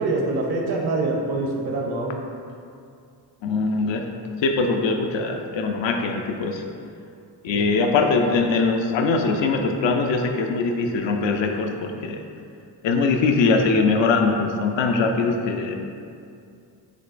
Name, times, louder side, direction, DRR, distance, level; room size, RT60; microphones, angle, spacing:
voice 1, 0.0-2.2 7.5-7.7, right 2 dB, 55° right, 0 dB, 0.7 m, -25 dB
voice 2, 3.4-4.0 4.4-6.6 7.4-12.2 12.8-15.8, left 4 dB, 70° left, 4 dB, 0.5 m, -22 dB
5.2 x 3.7 x 2.5 m, 2.4 s
cardioid pair, 45°, 47 cm